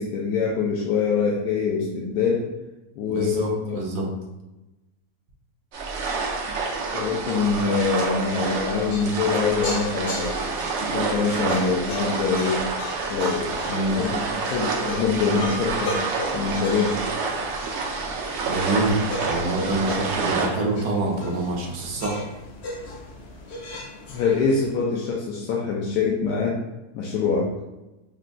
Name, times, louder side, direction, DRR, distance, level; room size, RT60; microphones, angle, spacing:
voice 1, 0.0-2.5 3.0-3.8 6.9-10.4 10.9-12.6 13.1-16.0 16.3-17.0 24.1-26.6 26.9-27.5, left 5 dB, 90° left, -3 dB, 1.2 m, -24 dB
voice 2, 3.0-4.1 13.7-14.0 18.5-22.2, right 2 dB, 85° right, 0 dB, 1.4 m, -26 dB
sound 1, 5.7-20.5, right 4 dB, 60° right, 0.7 m, -28 dB
sound 2, 7.5-24.7, left 1 dB, 60° left, 0.7 m, -38 dB
6.2 x 2.2 x 2.5 m, 1.0 s
omnidirectional pair, 1.7 m